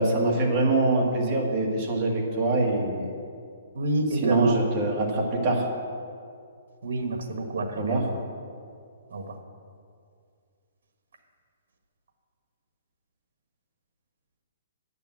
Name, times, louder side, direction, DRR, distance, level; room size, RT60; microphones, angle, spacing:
voice 1, 0.0-3.1 4.1-5.6 7.8-8.0, right 2 dB, 25° right, -1 dB, 1.6 m, -24 dB
voice 2, 3.7-4.6 6.8-8.1 9.1-9.4, right 2 dB, 75° right, 5 dB, 1.4 m, -28 dB
9.1 x 6.9 x 7.4 m, 2.3 s
hypercardioid pair, 170°, 0 cm